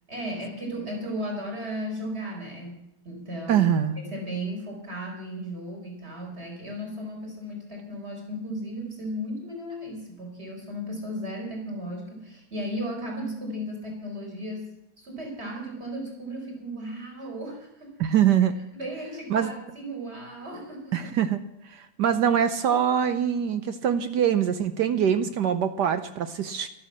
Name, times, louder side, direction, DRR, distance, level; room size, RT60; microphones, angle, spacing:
voice 1, 0.1-3.7 4.0-14.7 15.0-17.9 18.7-21.0, equal, 30° right, 0 dB, 4.6 m, -35 dB
voice 2, 3.5-4.0 18.0-18.6 19.3-19.5 20.9-21.4 21.7-26.7, right 9 dB, 65° right, 10 dB, 1.1 m, -23 dB
13.0 x 12.0 x 7.3 m, 0.83 s
omnidirectional pair, 2.4 m